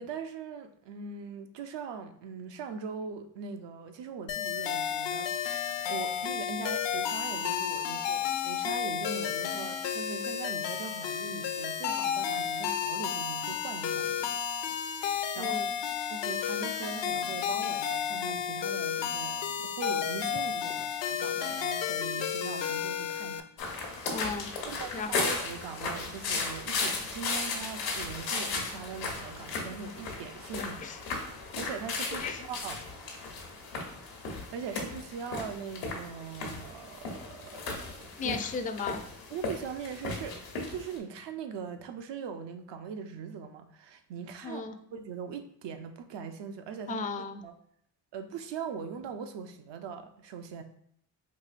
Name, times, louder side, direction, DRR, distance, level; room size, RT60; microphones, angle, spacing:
voice 1, 0.0-14.6 14.9-15.6 16.1-23.5 24.7-30.8 31.6-32.7 34.3-38.4 39.3-44.6 44.9-47.1 47.4-47.5 48.1-50.6, right 6 dB, 65° right, 0.6 m, -41 dB
sound 1, 4.3-23.4, left 8 dB, 70° left, 0.5 m, -32 dB
voice 2, 15.3-15.7 24.1-24.5 24.9-25.4 30.6-31.0 32.1-32.5 38.2-39.0 44.4-44.8 46.9-47.4, left 5 dB, 20° left, 0.3 m, -36 dB
sound 2, 23.6-41.0, left 3 dB, 90° left, 1.0 m, -36 dB
4.8 x 2.7 x 2.4 m
supercardioid pair, 55°, 46 cm